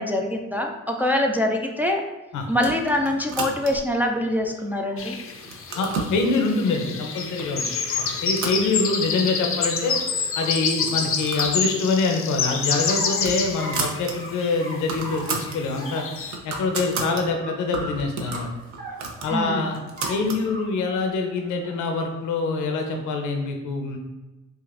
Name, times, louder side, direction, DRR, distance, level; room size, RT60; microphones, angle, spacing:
voice 1, 0.0-2.0 2.5-5.2 19.3-19.6, left 1 dB, 5° right, 1 dB, 0.4 m, -24 dB
sound 1, 2.5-4.0 4.5-5.0 5.3-6.2 6.9-7.0 7.4-7.7 8.0-9.2 9.6-9.7 9.9-10.0 10.7-11.6 11.9-12.1 12.5-14.1 14.5-14.6 14.8-15.6 16.0-17.2 17.7-20.4, right 4 dB, 70° right, 0.7 m, -33 dB
sound 2, 3.7-3.8 4.4-5.1 6.2-6.3 6.6-6.7 7.1-7.2 7.7-8.2 9.3-10.0 10.3-10.5 10.8-12.0 12.4-13.2 13.6-13.8 14.2-14.3 14.6-15.4 15.7-16.1 16.5-16.6 17.0-17.1 17.4-17.5 17.8-17.9 18.2-18.9 19.3-19.6 20.0-20.2 20.4-20.9 21.2-21.8 22.6-23.1, equal, 25° right, 1.2 m, -39 dB
sound 3, 5.0-15.0 15.2-16.4, left 5 dB, 45° left, 0.5 m, -28 dB
voice 2, 5.8-7.6 8.2-9.9 10.3-16.0 16.4-18.5 19.2-19.8 20.1-24.0, left 3 dB, 80° left, 3 dB, 0.7 m, -25 dB
5.0 x 2.5 x 2.5 m, 1.1 s
cardioid pair, 90°, 30 cm